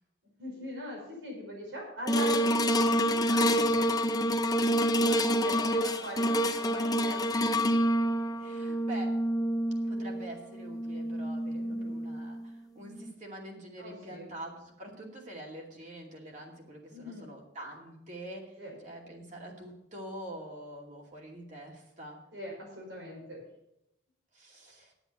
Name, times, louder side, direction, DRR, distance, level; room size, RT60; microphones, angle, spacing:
voice 1, 0.4-3.7 5.0-7.2 11.6-12.0 13.8-14.3 16.9-17.3 18.6-18.7 22.3-23.4, equal, 85° right, -1 dB, 5.2 m, -41 dB
sound 1, 2.1-12.5 13.0-13.1, equal, 20° left, 0.7 m, -28 dB
voice 2, 3.5-3.9 8.4-9.2 9.8-18.5 18.8-22.2 24.3-24.9, right 1 dB, 40° right, 0 dB, 2.5 m, -45 dB
10.0 x 8.1 x 7.1 m, 0.84 s
head